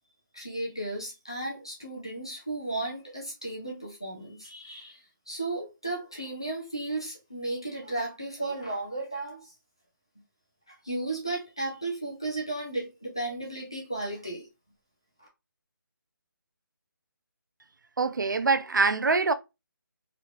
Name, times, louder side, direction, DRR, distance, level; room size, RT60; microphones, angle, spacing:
voice 1, 0.3-9.5 10.7-14.5 15.2-15.3, right 2 dB, 15° left, 0.4 m, -34 dB
voice 2, 18.0-19.3, right 4 dB, 65° right, 0.4 m, -24 dB
3.2 x 2.9 x 2.5 m
figure-of-eight pair, 180°, 11 cm